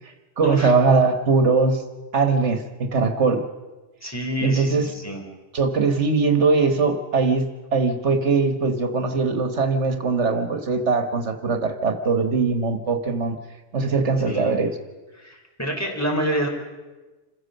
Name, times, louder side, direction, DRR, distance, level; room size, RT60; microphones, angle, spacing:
voice 1, 0.0-1.8 2.1-3.4 4.4-4.9 5.5-13.4 13.7-14.8, right 4 dB, 70° right, 8 dB, 1.7 m, -21 dB
voice 2, 4.0-5.2 14.3-14.5 15.2-16.5, equal, 10° left, 0 dB, 3.7 m, -27 dB
27.0 x 15.5 x 6.6 m, 1.2 s
omnidirectional pair, 1.2 m